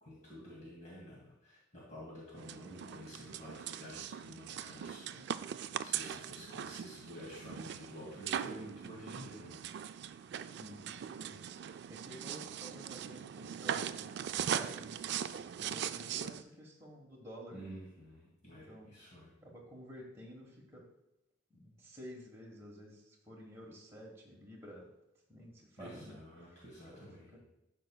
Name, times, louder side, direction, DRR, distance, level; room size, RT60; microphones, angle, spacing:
voice 1, 0.0-5.5 5.8-9.6 17.5-19.3 25.8-27.4, equal, 40° left, -6 dB, 2.1 m, -50 dB
sound 1, 2.4-16.4, right 9 dB, 60° right, 0.3 m, -40 dB
voice 2, 10.4-11.4 11.9-15.3 15.6-17.7 18.7-18.9 19.4-20.9 21.5-24.9 25.3-26.1 26.5-26.6 26.9-27.4, equal, 15° right, -3 dB, 1.3 m, -51 dB
12.0 x 5.4 x 2.3 m, 0.92 s
head